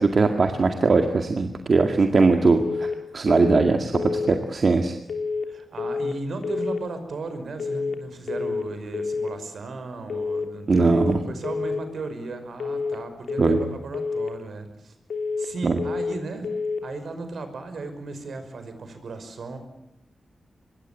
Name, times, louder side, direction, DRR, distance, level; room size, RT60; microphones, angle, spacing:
voice 1, 0.0-4.9 10.7-11.2 13.4-13.6 15.6-15.8, right 4 dB, 50° right, 5 dB, 2.0 m, -20 dB
voice 2, 1.7-2.0 4.3-4.7 5.5-11.0 11.3-14.9 15.4-16.5 16.8-19.6, right 3 dB, 70° right, 8 dB, 5.5 m, -36 dB
sound 1, 2.6-3.0 3.3-3.7 3.9-4.3 5.1-5.5 5.8-6.2 6.4-6.8 7.6-8.0 8.3-8.7 8.9-9.3 10.1-10.5 10.8-11.2 11.4-11.8 12.6-13.0 13.3-13.7 13.9-14.3 15.1-15.5 15.8-16.2 16.4-16.8, left 4 dB, 85° left, 3.4 m, -28 dB
25.0 x 22.0 x 7.5 m, 0.85 s
wide cardioid pair, 120°, 0 cm